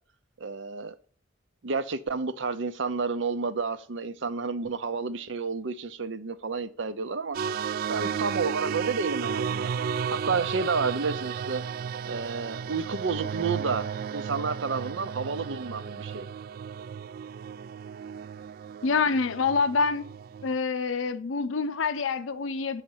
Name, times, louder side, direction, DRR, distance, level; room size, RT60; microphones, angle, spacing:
voice 1, 0.4-1.0 1.6-7.4 7.9-9.7 10.1-11.6 12.0-16.3, right 4 dB, 70° right, 0.7 m, -30 dB
sound 1, 7.3-20.6, right 7 dB, 50° right, 0.3 m, -33 dB
voice 2, 18.8-20.0 20.4-22.8, left 4 dB, 85° left, 0.6 m, -26 dB
6.4 x 5.8 x 7.3 m
head